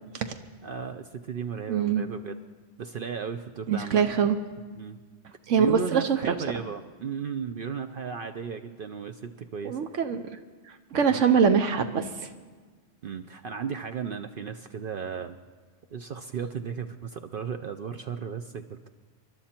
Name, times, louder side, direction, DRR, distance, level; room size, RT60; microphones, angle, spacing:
voice 1, 0.6-2.4 2.8-4.0 4.8-5.0 5.6-9.8 11.1-11.2 13.0-15.4 15.9-18.9, right 6 dB, 55° right, 8 dB, 0.7 m, -35 dB
voice 2, 1.7-2.0 3.7-4.4 5.5-6.2 9.6-10.2 10.9-12.3, right 6 dB, 80° right, 8 dB, 1.2 m, -23 dB
28.0 x 11.5 x 4.4 m, 1.4 s
omnidirectional pair, 1.3 m